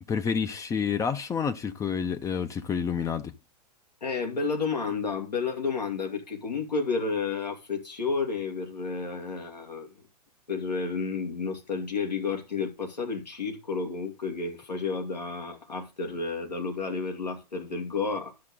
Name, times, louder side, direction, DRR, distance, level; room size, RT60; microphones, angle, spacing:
voice 1, 0.1-3.3, left 6 dB, 15° left, 0.6 m, -29 dB
voice 2, 4.0-9.9 10.5-18.3, left 4 dB, 85° left, 2.6 m, -31 dB
11.5 x 6.4 x 3.8 m
figure-of-eight pair, 105°, 21 cm